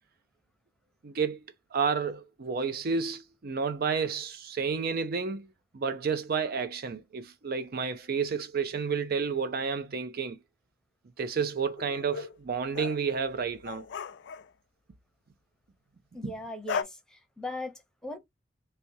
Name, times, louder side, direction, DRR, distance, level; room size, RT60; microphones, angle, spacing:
voice 1, 1.0-1.4 1.7-5.5 5.7-10.4 11.2-13.8 16.2-16.4, right 5 dB, 55° right, 0.5 m, -31 dB
sound 1, 11.8-12.4 12.7-14.5 16.7-16.8, left 5 dB, 65° left, 0.4 m, -37 dB
voice 2, 16.1-18.2, left 1 dB, 5° left, 0.7 m, -39 dB
3.3 x 2.6 x 2.6 m
head